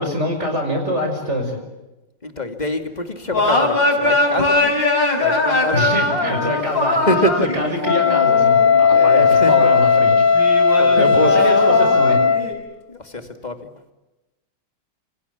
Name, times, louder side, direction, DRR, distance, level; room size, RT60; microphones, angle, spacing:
voice 1, 0.0-1.6 5.7-7.0 7.5-10.2 11.0-12.2, equal, 30° right, 4 dB, 6.0 m, -24 dB
voice 2, 2.2-4.8 5.2-6.1 6.4-6.5 7.0-7.5 8.9-9.5 10.8-11.3 12.9-13.6, left 1 dB, 20° left, 7 dB, 2.5 m, -25 dB
sound 1, 3.3-9.9 10.3-12.5, left 2 dB, 60° left, 6.2 m, -21 dB
Wind instrument woodwind instrument, 7.8-12.5, left 5 dB, 75° left, 3.7 m, -15 dB
27.5 x 27.0 x 7.1 m, 1.0 s
omnidirectional pair, 2.3 m